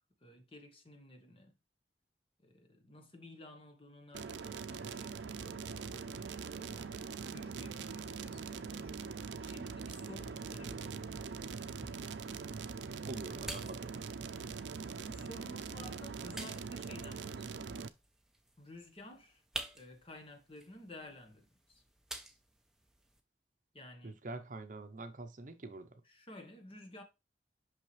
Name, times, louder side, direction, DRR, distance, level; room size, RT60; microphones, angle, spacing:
voice 1, 0.2-1.6 2.4-8.9 9.4-11.5 15.1-17.7 18.6-19.4 19.7-21.8 23.7-24.2 26.0-27.0, left 1 dB, 30° left, 1.2 m, -53 dB
sound 1, 4.1-17.9, right 5 dB, 90° right, 0.5 m, -42 dB
sound 2, 11.2-23.2, right 1 dB, 5° right, 0.6 m, -51 dB
voice 2, 13.0-14.1 24.0-25.9, right 2 dB, 45° right, 0.7 m, -45 dB
5.8 x 5.6 x 3.2 m
head